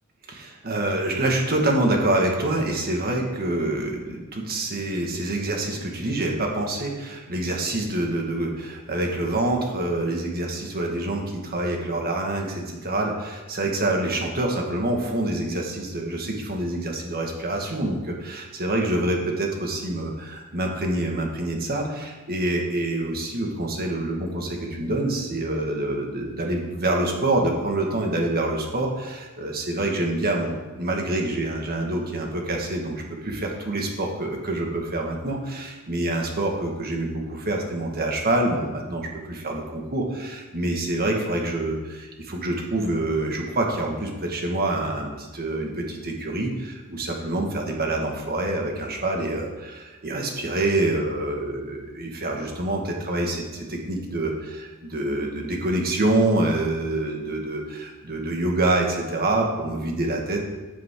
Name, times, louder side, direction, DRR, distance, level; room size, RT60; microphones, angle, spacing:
voice 1, 0.3-30.5 30.8-60.5, right 2 dB, 45° right, 1 dB, 1.8 m, -26 dB
14.0 x 7.3 x 3.8 m, 1.2 s
head